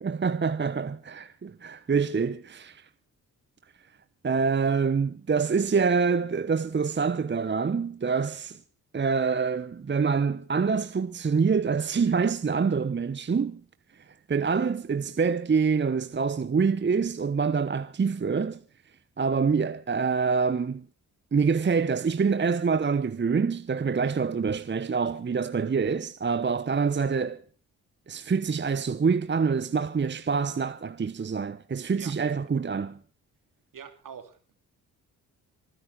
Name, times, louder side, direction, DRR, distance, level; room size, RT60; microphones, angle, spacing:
voice 1, 0.0-2.9 4.2-8.6 8.9-13.6 14.3-18.6 19.2-20.9 21.3-27.4 28.1-33.0, right 5 dB, 30° right, 1.0 m, -26 dB
voice 2, 33.7-34.5, right 7 dB, 55° right, 3.0 m, -44 dB
26.0 x 10.5 x 4.2 m
hypercardioid pair, 45°, 39 cm